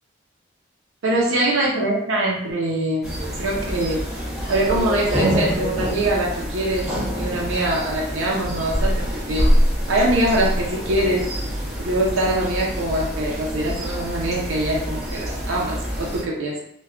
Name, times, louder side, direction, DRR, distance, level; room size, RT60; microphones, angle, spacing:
voice 1, 1.0-4.0 4.5-6.9 7.2-9.5 9.9-11.2 11.8-16.6, right 1 dB, 85° right, -3 dB, 0.6 m, -23 dB
sound 1, 3.0-16.2, equal, 5° right, 0.6 m, -25 dB
2.2 x 2.2 x 3.6 m, 0.72 s
head